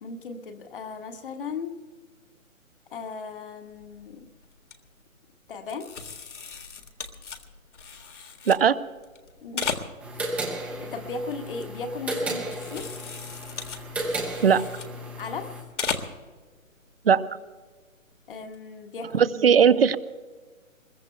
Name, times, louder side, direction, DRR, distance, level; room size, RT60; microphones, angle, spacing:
voice 1, 0.0-1.8 2.9-4.3 5.5-5.9 9.4-9.8 10.8-12.9 15.2-15.6 18.3-19.3, left 4 dB, 40° left, 5 dB, 1.5 m, -36 dB
sound 1, 3.7-4.0 4.4-4.7 5.7-8.6 9.0-10.3 10.7-12.1 12.4-15.4 15.7-16.3 16.6-16.7 18.3-18.6, left 5 dB, 60° left, 1.8 m, -36 dB
voice 2, 8.5-8.8 14.4-14.6 17.0-17.2 19.1-20.0, right 7 dB, 45° right, 16 dB, 0.7 m, -18 dB
sound 2, 10.0-15.6, right 1 dB, 5° right, 0.8 m, -34 dB
25.0 x 21.5 x 2.3 m, 1.4 s
figure-of-eight pair, 145°, 41 cm